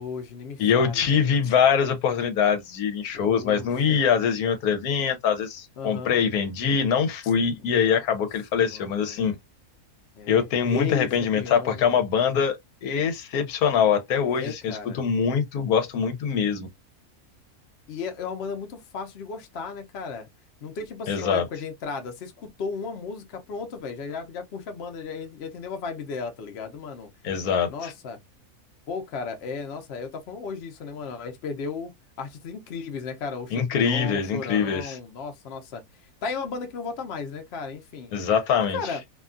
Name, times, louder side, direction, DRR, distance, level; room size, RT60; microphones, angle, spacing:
voice 1, 0.0-1.3 3.1-4.1 5.8-6.2 7.6-7.8 8.5-9.4 10.1-11.8 14.3-15.0 17.9-20.3 20.6-27.1 27.7-28.2 28.9-31.9 32.2-35.8 36.2-38.2 38.6-39.0, left 5 dB, 55° left, 0.8 m, -35 dB
voice 2, 0.6-9.3 10.3-16.7 21.1-21.4 27.2-27.9 33.5-35.0 38.1-39.0, left 7 dB, 80° left, 1.2 m, -23 dB
2.7 x 2.3 x 2.4 m
omnidirectional pair, 1.6 m